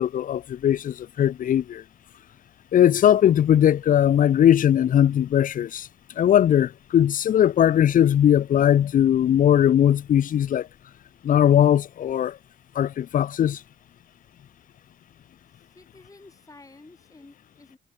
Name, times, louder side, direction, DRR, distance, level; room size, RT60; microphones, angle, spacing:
voice 1, 0.0-1.8 2.7-5.9 6.2-10.7 11.2-12.4 12.8-13.6, left 10 dB, 45° left, 0.4 m, -19 dB
voice 2, 15.5-17.8, left 2 dB, 15° left, 7.2 m, -51 dB
cardioid pair, 90°, 20 cm